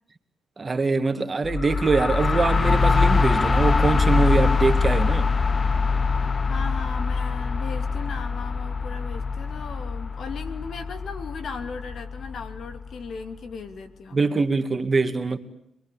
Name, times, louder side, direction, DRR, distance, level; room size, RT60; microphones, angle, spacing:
voice 1, 0.6-5.3 14.1-15.4, right 3 dB, 35° right, 2.2 m, -23 dB
sound 1, 1.4-13.1, left 4 dB, 35° left, 1.0 m, -23 dB
voice 2, 6.2-14.4, left 5 dB, 65° left, 2.8 m, -37 dB
27.0 x 22.0 x 8.6 m
cardioid pair, 70°, 0 cm